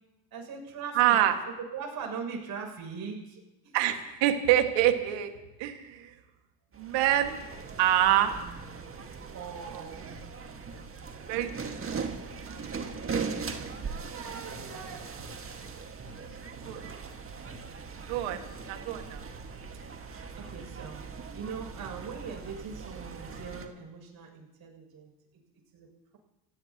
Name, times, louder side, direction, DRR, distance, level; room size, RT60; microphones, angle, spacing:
voice 1, 0.3-1.2 1.7-3.7 9.3-10.2 14.1-15.1 19.3-19.4 20.1-25.1 25.7-26.2, right 5 dB, 50° right, 1 dB, 7.1 m, -41 dB
voice 2, 1.0-1.3 3.7-5.3 5.6-6.1 6.8-7.4 7.8-8.4 11.3-11.5 11.9-12.0 16.7-16.8 18.1-18.4 18.7-19.2, right 12 dB, 70° right, 6 dB, 2.0 m, -25 dB
sound 1, 6.7-23.7, right 5 dB, 30° right, 1.9 m, -40 dB
27.5 x 16.5 x 3.0 m, 0.99 s
hypercardioid pair, 80°, 46 cm